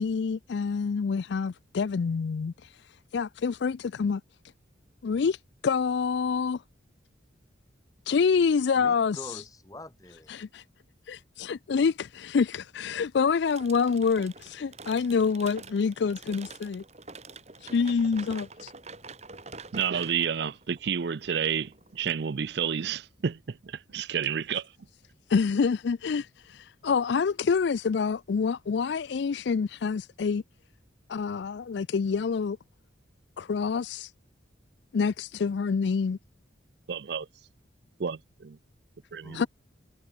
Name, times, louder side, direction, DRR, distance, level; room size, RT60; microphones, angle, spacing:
voice 1, 0.0-2.7 3.1-4.2 5.0-5.4 5.6-6.6 8.1-9.4 10.3-10.6 11.1-16.8 17.6-18.7 25.3-30.4 31.1-32.6 33.4-34.1 34.9-36.2 39.3-39.5, left 5 dB, 65° left, 0.4 m, -27 dB
voice 2, 8.7-10.5 39.2-39.5, left 1 dB, 20° left, 4.7 m, -45 dB
sound 1, 13.5-22.2, right 4 dB, 35° right, 3.1 m, -46 dB
voice 3, 19.7-24.7 36.9-37.2 38.0-38.2 39.1-39.4, right 7 dB, 60° right, 0.5 m, -30 dB
head